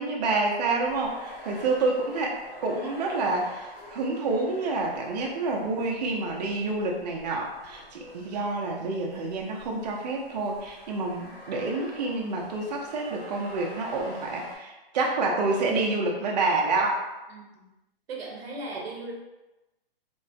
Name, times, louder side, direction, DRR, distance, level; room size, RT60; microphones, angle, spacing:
voice 1, 0.0-17.0 18.7-18.8, right 3 dB, 45° right, -1 dB, 0.6 m, -28 dB
sound 1, 0.8-14.6, equal, 75° left, 1.3 m, -46 dB
voice 2, 17.3-17.7 18.1-19.1, right 2 dB, 90° right, 0 dB, 0.8 m, -38 dB
3.0 x 2.1 x 2.6 m, 1.0 s
hypercardioid pair, 160°, 30 cm